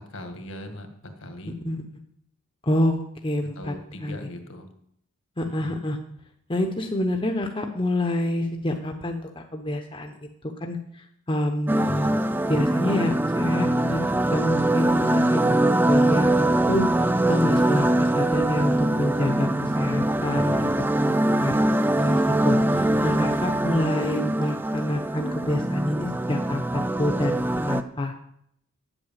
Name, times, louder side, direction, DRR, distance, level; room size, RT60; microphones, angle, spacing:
voice 1, 0.0-1.5 3.6-4.7 5.4-5.8 11.8-12.3 20.3-20.7 22.7-23.1, left 1 dB, 65° left, 5 dB, 1.8 m, -39 dB
voice 2, 2.6-3.7 4.0-4.2 5.4-6.0 6.5-10.1 10.6-10.8 11.3-12.1 12.5-14.0 14.3-20.7 21.0-21.6 22.0-22.6 23.0-28.1, left 1 dB, 25° left, 4 dB, 0.8 m, -27 dB
sound 1, 11.7-27.8, right 1 dB, 10° right, 0.3 m, -23 dB
9.7 x 8.0 x 7.4 m, 0.71 s
head